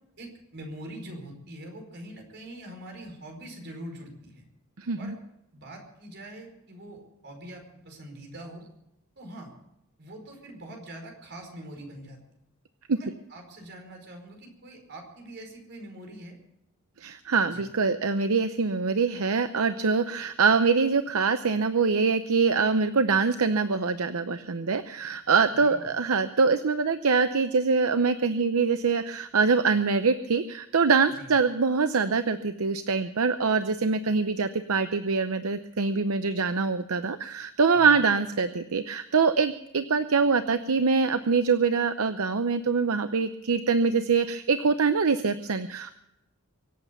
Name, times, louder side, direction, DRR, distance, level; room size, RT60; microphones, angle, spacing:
voice 1, 0.2-4.5 5.0-5.2 5.5-8.6 9.2-9.5 10.0-12.2 12.9-16.4 17.5-17.6 25.5-25.9 31.1-31.3 37.7-38.0, right 1 dB, 50° right, 2 dB, 4.9 m, -43 dB
voice 2, 4.8-5.1 12.9-13.0 17.0-45.9, right 5 dB, 75° right, 10 dB, 0.7 m, -24 dB
24.5 x 8.3 x 7.0 m, 0.84 s
head